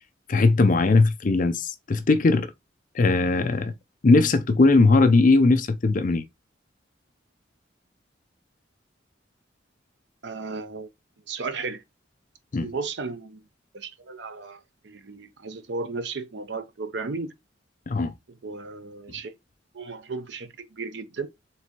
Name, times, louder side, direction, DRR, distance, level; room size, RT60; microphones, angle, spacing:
voice 1, 0.3-2.5 2.9-3.7 4.0-6.2 12.5-12.7 17.9-18.1, left 3 dB, 45° left, 0.5 m, -19 dB
voice 2, 10.2-10.9 11.3-11.8 12.6-13.4 13.7-17.3 18.3-19.3 19.7-21.3, right 4 dB, 65° right, 0.7 m, -34 dB
4.6 x 3.4 x 2.9 m
head